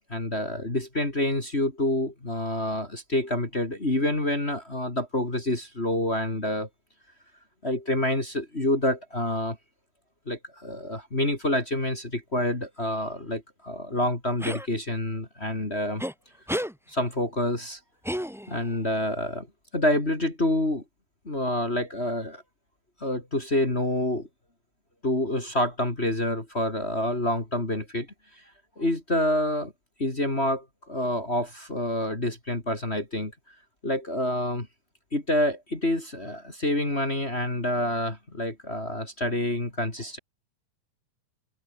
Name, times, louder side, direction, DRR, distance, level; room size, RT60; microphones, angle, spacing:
voice 1, 0.1-6.7 7.6-9.6 10.3-16.0 16.9-17.8 18.5-19.5 19.7-20.8 21.3-22.4 23.0-24.3 25.0-28.1 28.8-29.7 30.0-33.3 33.8-34.7 35.1-40.2, left 1 dB, 20° left, 3.7 m, -27 dB
sound 1, 14.4-14.7 16.0-16.1 16.5-16.7 18.0-18.7, equal, ahead, 3.9 m, -31 dB
omnidirectional pair, 3.3 m